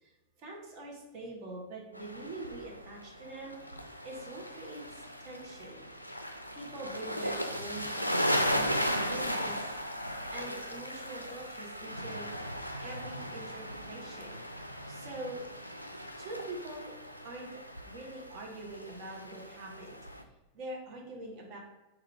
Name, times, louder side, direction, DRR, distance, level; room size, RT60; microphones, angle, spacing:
voice 1, 0.4-3.7 4.0-5.9 6.5-9.6 10.3-12.3 12.8-14.4 14.9-15.4 16.2-16.9 17.2-17.5 17.9-20.0 20.5-21.6, right 2 dB, 40° right, -2 dB, 1.1 m, -44 dB
sound 1, 1.9-20.2, equal, 90° left, 0.3 m, -37 dB
3.7 x 2.7 x 4.4 m, 1.0 s
figure-of-eight pair, 90°, 0 cm